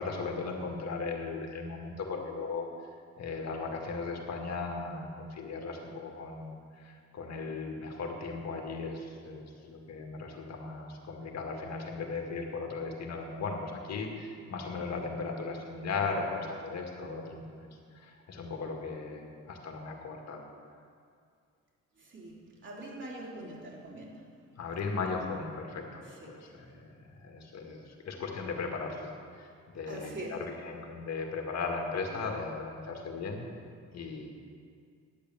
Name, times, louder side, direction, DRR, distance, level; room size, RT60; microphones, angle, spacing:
voice 1, 0.0-2.7 3.2-17.7 17.9-20.5 24.6-33.5 33.9-34.3, left 4 dB, 60° left, 1 dB, 2.0 m, -37 dB
voice 2, 22.0-24.3 26.0-26.7 29.9-30.4, right 2 dB, 40° right, -3 dB, 3.4 m, -44 dB
10.0 x 8.7 x 7.5 m, 2.3 s
cardioid pair, 90°, 30 cm